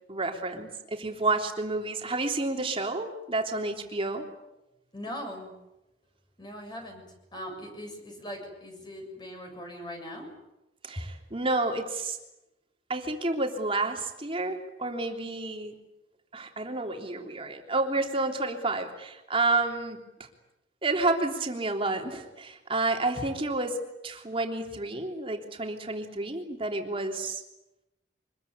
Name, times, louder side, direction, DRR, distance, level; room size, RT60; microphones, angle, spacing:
voice 1, 0.1-4.3 10.8-12.2 12.9-15.7 16.3-20.0 20.8-23.8 24.0-27.4, right 2 dB, 30° right, 3 dB, 3.3 m, -30 dB
voice 2, 4.9-5.6 6.4-10.3 11.0-11.1, equal, 25° left, 3 dB, 7.1 m, -40 dB
25.0 x 21.5 x 9.6 m, 0.94 s
head